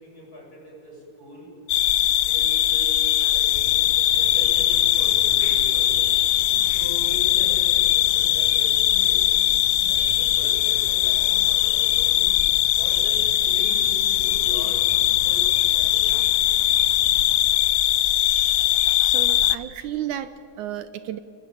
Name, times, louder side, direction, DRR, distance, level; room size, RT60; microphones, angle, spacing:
voice 1, 0.0-1.5 2.2-5.9 6.6-9.2 9.8-12.2 12.8-14.9 15.2-15.5 15.7-16.5, left 1 dB, 25° left, -3 dB, 8.4 m, -41 dB
sound 1, 1.7-19.6, left 14 dB, 75° left, 1.9 m, -20 dB
sound 2, 3.5-17.5, equal, 20° right, 5.0 m, -43 dB
voice 2, 19.0-21.2, right 11 dB, 75° right, 13 dB, 2.1 m, -32 dB
30.0 x 20.5 x 9.2 m, 2.8 s
omnidirectional pair, 3.9 m